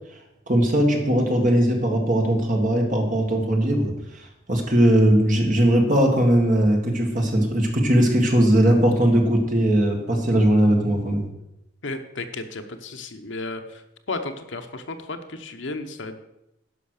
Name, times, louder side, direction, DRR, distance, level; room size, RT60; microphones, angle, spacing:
voice 1, 0.5-11.3, right 1 dB, 40° right, 2 dB, 1.9 m, -19 dB
voice 2, 11.8-13.8 14.1-16.2, left 2 dB, 70° left, 7 dB, 0.9 m, -33 dB
11.0 x 5.7 x 6.5 m, 0.86 s
head